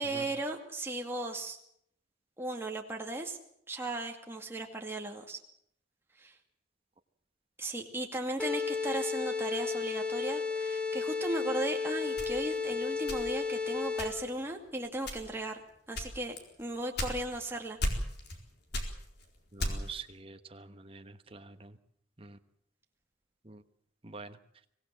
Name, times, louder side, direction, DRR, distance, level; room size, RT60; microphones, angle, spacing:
voice 1, 0.0-1.6 2.4-3.4 3.7-5.4 6.2-6.3 7.6-15.6 15.9-17.8, right 1 dB, 10° right, 2 dB, 2.3 m, -36 dB
sound 1, 8.4-14.3, left 5 dB, 5° left, 1.6 m, -33 dB
sound 2, 12.2-13.6 14.0-14.4 15.0-15.5 15.9-17.5 17.8-18.4 18.7-20.0, left 1 dB, 55° left, 4.3 m, -35 dB
voice 2, 19.5-21.7 22.2-22.4 23.4-23.6 24.0-24.4, right 4 dB, 30° right, 8 dB, 1.2 m, -46 dB
24.5 x 18.0 x 7.5 m, 0.70 s
head